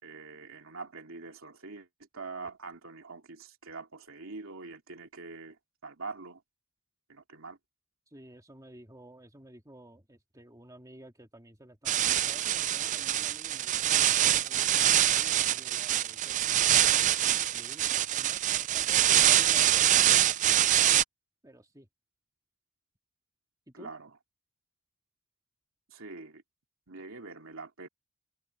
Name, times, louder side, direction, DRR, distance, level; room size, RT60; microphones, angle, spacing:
voice 1, 0.0-6.4 7.1-7.6 23.7-24.2 25.9-26.4 26.9-27.9, right 3 dB, 80° right, 2.7 m, -44 dB
voice 2, 8.1-16.8 17.5-20.0 21.4-21.9 23.7-23.9, right 1 dB, 15° right, 2.3 m, -52 dB
sound 1, 11.9-21.0, right 12 dB, 35° right, 0.3 m, -25 dB
head